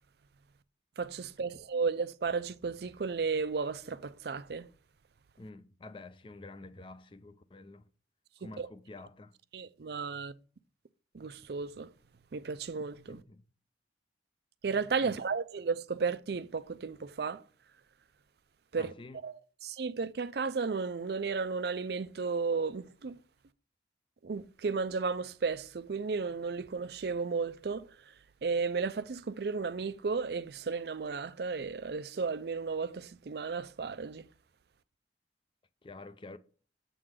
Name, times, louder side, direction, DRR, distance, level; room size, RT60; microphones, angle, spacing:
voice 1, 1.0-4.7 8.4-8.7 9.5-10.3 11.1-11.9 12.3-13.2 14.6-17.4 18.7-18.9 19.2-23.2 24.2-27.9 28.4-34.3, right 5 dB, 60° right, 0.5 m, -34 dB
voice 2, 5.4-7.9 8.4-9.3 13.1-13.4 15.0-15.2 18.8-19.2 35.8-36.4, left 2 dB, 30° left, 0.5 m, -48 dB
7.7 x 3.8 x 6.3 m
head